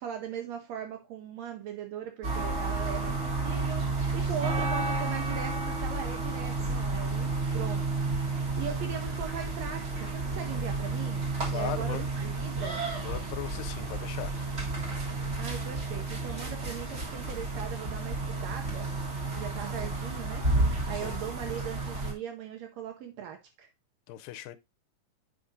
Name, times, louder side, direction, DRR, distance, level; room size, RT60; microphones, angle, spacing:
voice 1, 0.0-12.8 15.4-23.7, right 8 dB, 85° right, 1.5 m, -40 dB
sound 1, 2.2-22.1, right 3 dB, 65° right, 0.6 m, -31 dB
voice 2, 11.5-12.1 13.0-14.3 20.9-21.2 24.1-24.6, left 13 dB, 85° left, 2.3 m, -38 dB
8.1 x 5.0 x 2.6 m
omnidirectional pair, 4.0 m